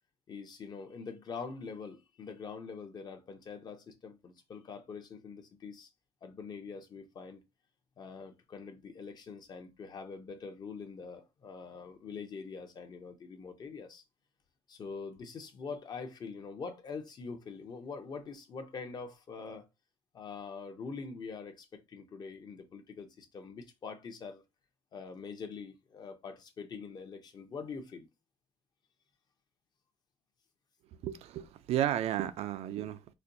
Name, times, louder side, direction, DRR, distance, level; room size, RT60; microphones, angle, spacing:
voice 1, 0.3-5.9 6.2-7.4 8.0-14.0 14.7-19.7 20.1-24.4 24.9-28.1, left 5 dB, 35° left, 0.7 m, -44 dB
voice 2, 31.0-33.1, right 11 dB, 65° right, 0.4 m, -33 dB
4.2 x 2.2 x 2.6 m
cardioid pair, 140°, 12 cm